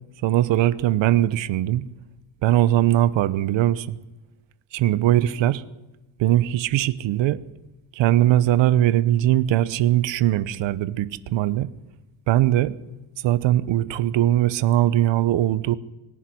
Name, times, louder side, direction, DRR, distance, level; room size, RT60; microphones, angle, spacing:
voice 1, 0.2-1.8 2.4-4.0 4.7-5.6 6.2-7.4 7.9-11.7 12.3-12.8 13.2-15.8, right 13 dB, 60° right, 1.0 m, -20 dB
24.5 x 11.0 x 9.9 m
cardioid pair, 170°, 50 cm